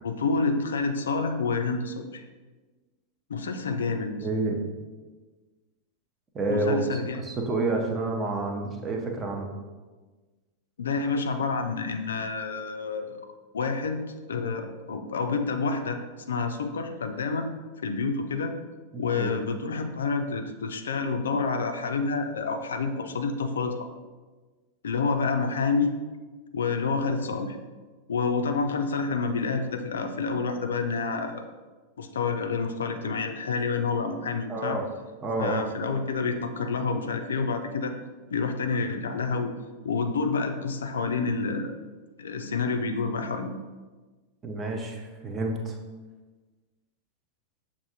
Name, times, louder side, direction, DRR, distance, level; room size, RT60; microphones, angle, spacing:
voice 1, 0.0-2.2 3.3-4.2 6.5-7.2 10.8-13.2 13.5-14.0 14.3-16.0 16.3-17.5 17.8-18.5 19.0-23.8 24.8-25.9 26.5-27.6 28.1-31.5 32.0-34.8 35.4-37.9 38.3-39.5 39.8-41.7 42.2-43.5, left 4 dB, 65° left, 6 dB, 0.3 m, -28 dB
voice 2, 4.2-4.6 6.3-9.5 18.9-19.3 34.5-34.8 35.2-35.6 44.4-45.8, right 2 dB, 20° right, 2 dB, 0.7 m, -29 dB
6.7 x 2.6 x 2.7 m, 1.3 s
figure-of-eight pair, 90°, 0 cm